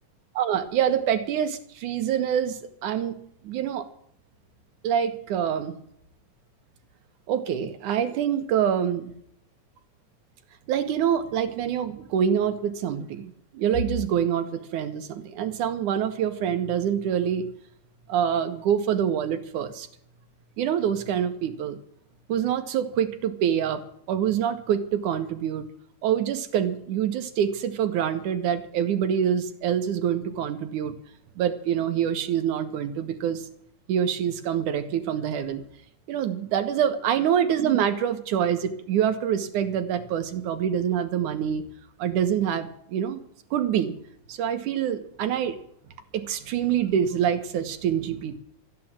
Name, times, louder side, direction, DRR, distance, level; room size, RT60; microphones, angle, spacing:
voice 1, 0.4-3.2 3.4-3.9 4.8-5.7 7.3-9.2 10.7-17.5 18.1-19.9 20.6-21.8 22.3-23.8 24.1-25.7 26.0-30.9 31.4-33.5 33.9-35.6 36.1-41.6 42.0-43.2 43.5-43.9 44.3-45.6 46.1-48.4, right 9 dB, 85° right, 7 dB, 2.8 m, -26 dB
14.0 x 9.4 x 7.4 m, 0.69 s
omnidirectional pair, 3.4 m